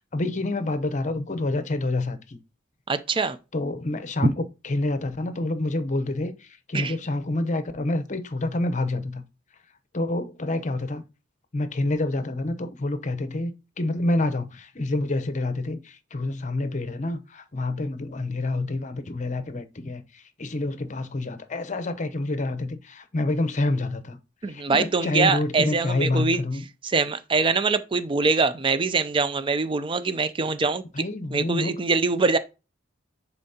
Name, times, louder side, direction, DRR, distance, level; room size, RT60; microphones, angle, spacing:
voice 1, 0.1-2.4 3.5-9.2 9.9-11.0 11.5-13.5 13.8-24.2 24.5-26.6 30.9-31.7, left 2 dB, 40° left, 0.8 m, -28 dB
voice 2, 2.9-3.4 4.2-4.3 6.7-6.9 24.4-26.4 26.8-31.0 31.3-32.4, right 4 dB, 25° right, 0.4 m, -23 dB
10.0 x 4.3 x 2.8 m
head